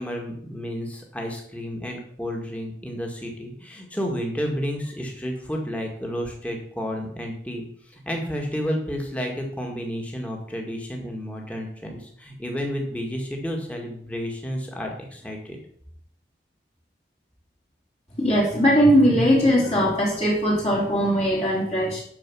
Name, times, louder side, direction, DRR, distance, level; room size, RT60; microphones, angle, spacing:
voice 1, 0.0-7.7 7.9-15.6, equal, 10° left, 0 dB, 1.8 m, -31 dB
voice 2, 18.2-22.0, equal, 35° left, -5 dB, 2.9 m, -20 dB
11.5 x 4.7 x 6.2 m, 0.65 s
head